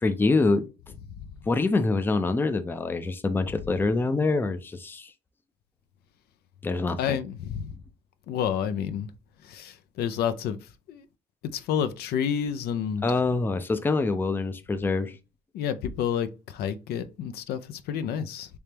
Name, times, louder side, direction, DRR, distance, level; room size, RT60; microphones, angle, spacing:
voice 1, 0.0-0.7 1.5-5.1 6.6-7.2 13.0-15.2, left 3 dB, 10° left, 0.4 m, -25 dB
voice 2, 7.0-7.6 8.3-9.1 9.5-10.6 10.9-11.0 11.5-13.0 15.5-18.5, left 8 dB, 70° left, 0.4 m, -29 dB
3.4 x 3.2 x 2.9 m
cardioid pair, 110°, 17 cm